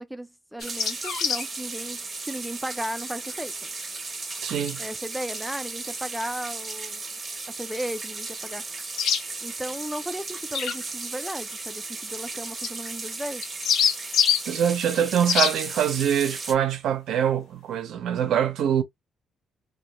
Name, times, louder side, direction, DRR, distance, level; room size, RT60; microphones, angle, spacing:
voice 1, 0.0-3.7 4.8-7.0 7.5-8.6 9.4-13.4, right 1 dB, 5° right, 0.4 m, -35 dB
sound 1, 0.6-1.5 4.6-4.7 9.0-9.2 10.5-10.8 12.6-12.7 13.4-14.4 15.3-15.5, left 8 dB, 75° left, 0.4 m, -24 dB
sound 2, 0.6-16.5, right 3 dB, 30° right, 0.7 m, -35 dB
voice 2, 4.4-4.8 14.5-18.8, right 9 dB, 75° right, 0.5 m, -24 dB
2.2 x 2.1 x 2.9 m
cardioid pair, 90°, 0 cm